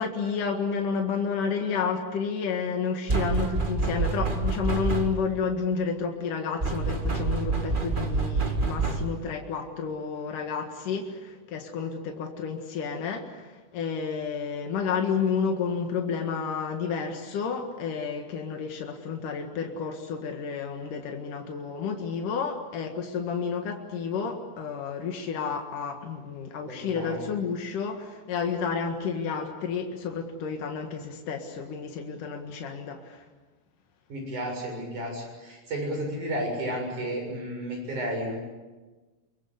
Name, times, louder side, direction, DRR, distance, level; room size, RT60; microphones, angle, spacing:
voice 1, 0.0-33.2, left 6 dB, 85° left, 3 dB, 3.4 m, -31 dB
sound 1, 3.1-5.3 6.6-9.3, right 3 dB, 20° right, 1.5 m, -27 dB
voice 2, 26.7-27.3 34.1-38.4, equal, 70° right, 1 dB, 8.7 m, -32 dB
26.0 x 22.5 x 8.2 m, 1.2 s
omnidirectional pair, 3.6 m